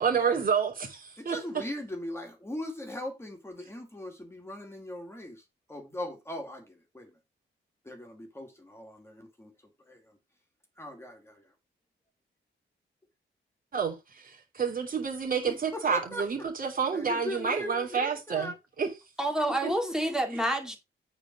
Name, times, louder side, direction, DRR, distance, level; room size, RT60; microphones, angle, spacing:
voice 1, 0.0-1.6 13.7-18.5 18.8-18.9, right 6 dB, 45° right, 3.0 m, -29 dB
voice 2, 1.2-7.1 7.8-9.5 9.9-10.0 10.8-11.5 15.4-16.2 16.9-18.6 19.6-19.9, left 1 dB, 10° left, 2.4 m, -39 dB
voice 3, 19.2-20.8, right 1 dB, 5° right, 2.3 m, -28 dB
8.8 x 4.5 x 6.0 m
wide cardioid pair, 160°, 20 cm